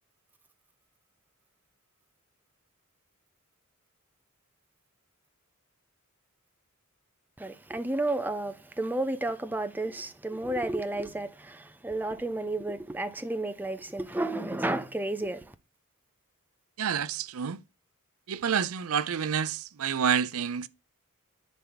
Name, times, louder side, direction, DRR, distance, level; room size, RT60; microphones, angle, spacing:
voice 1, 7.4-15.5, right 2 dB, 10° right, 0.6 m, -32 dB
voice 2, 16.8-17.6 18.3-20.7, right 7 dB, 70° right, 0.5 m, -28 dB
10.5 x 4.5 x 3.9 m
head